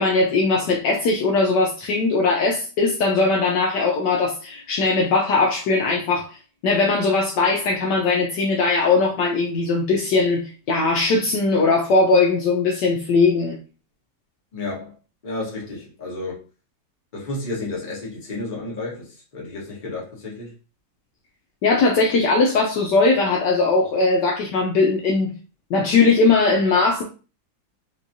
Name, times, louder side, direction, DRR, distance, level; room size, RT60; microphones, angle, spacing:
voice 1, 0.0-6.4 6.6-13.6 21.6-25.3 25.7-27.0, left 3 dB, 70° left, 1.2 m, -19 dB
voice 2, 14.5-14.9 15.2-16.4 17.1-20.5, left 2 dB, 30° left, 1.2 m, -31 dB
4.3 x 2.3 x 2.6 m
omnidirectional pair, 2.1 m